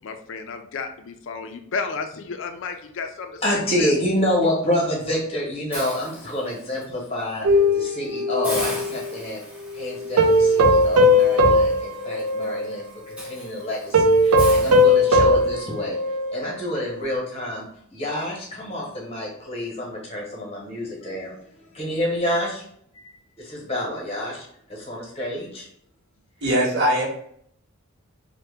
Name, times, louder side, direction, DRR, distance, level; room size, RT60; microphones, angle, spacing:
voice 1, 0.0-3.9, left 5 dB, 55° left, 6 dB, 0.4 m, -32 dB
voice 2, 3.4-7.5 7.7-9.4 9.7-16.0 16.3-17.7 17.9-21.3 21.7-22.6 22.9-23.0 23.4-25.7 26.6-26.7, left 1 dB, 25° left, -3 dB, 0.9 m, -28 dB
Hiss, 5.7-6.8 7.3-7.5 7.9-8.0 8.4-15.5, equal, 5° right, 0.7 m, -39 dB
sound 1, 7.4-9.0 10.2-12.8 13.1-13.3 13.9-16.5 16.9-17.0, left 1 dB, 85° right, 0.5 m, -18 dB
voice 3, 26.4-27.0, equal, 50° right, -5 dB, 0.9 m, -20 dB
2.8 x 2.1 x 3.3 m, 0.67 s
head